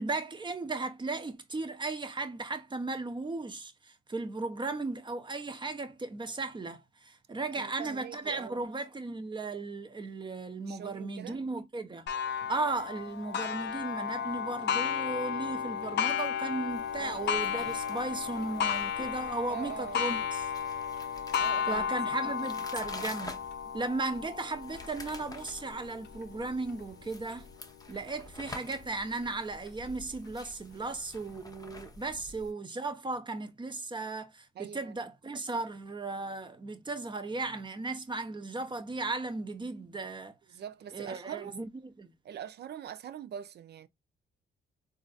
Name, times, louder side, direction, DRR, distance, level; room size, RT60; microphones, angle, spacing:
voice 1, 0.0-12.1 12.5-20.5 21.7-23.5 23.7-27.5 27.9-40.3 40.9-41.7 42.0-42.1, right 3 dB, 25° right, 0.8 m, -36 dB
voice 2, 7.5-8.7 10.7-11.4 16.9-17.7 19.5-20.0 21.4-22.2 34.5-35.0 40.5-41.7 42.2-43.9, right 9 dB, 55° right, 0.6 m, -43 dB
Clock, 12.1-27.4 28.0-28.1 28.6-28.7 29.7-29.8, left 8 dB, 60° left, 0.6 m, -34 dB
sound 1, 16.7-32.5, left 2 dB, 20° left, 0.8 m, -49 dB
3.9 x 2.6 x 2.3 m
cardioid pair, 90°, 20 cm